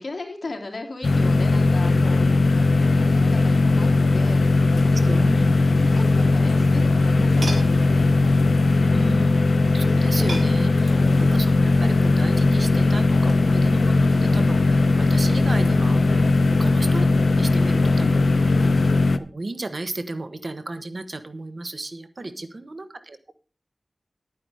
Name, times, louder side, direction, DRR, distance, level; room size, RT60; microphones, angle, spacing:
voice 1, 0.0-2.6 2.9-5.2 5.7-9.0 22.2-22.7, left 2 dB, 65° left, 3 dB, 2.8 m, -38 dB
sound 1, 1.0-19.2, left 3 dB, 85° left, 0.6 m, -19 dB
voice 2, 4.9-5.6 8.9-9.3 9.7-16.3 16.6-17.1 17.4-18.8 19.2-23.3, right 2 dB, 60° right, 10 dB, 1.2 m, -34 dB
sound 2, 5.7-8.0 10.1-11.1 13.2-13.5, right 2 dB, 80° right, 3.5 m, -36 dB
11.0 x 9.8 x 4.8 m, 0.35 s
wide cardioid pair, 75°, 0 cm